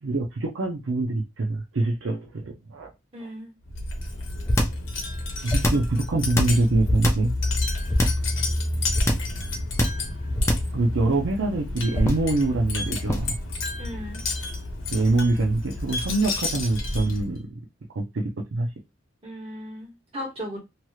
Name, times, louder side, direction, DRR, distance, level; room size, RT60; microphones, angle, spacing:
voice 1, 0.0-2.9 3.2-3.3 5.4-7.3 10.7-13.4 14.9-17.6 17.9-18.7, right 2 dB, 75° right, 0.6 m, -24 dB
voice 2, 3.1-3.5 13.8-14.2 19.2-20.6, equal, 30° right, 1.6 m, -36 dB
Wind chime, 3.6-17.4, left 2 dB, 75° left, 0.9 m, -30 dB
sound 1, 4.5-4.9 5.5-5.9 6.3-7.3 7.9-8.3 9.0-9.4 9.8-10.1 10.4-10.8 11.9-12.3 13.1-13.4, left 1 dB, 15° left, 0.4 m, -22 dB
3.0 x 2.9 x 2.3 m
head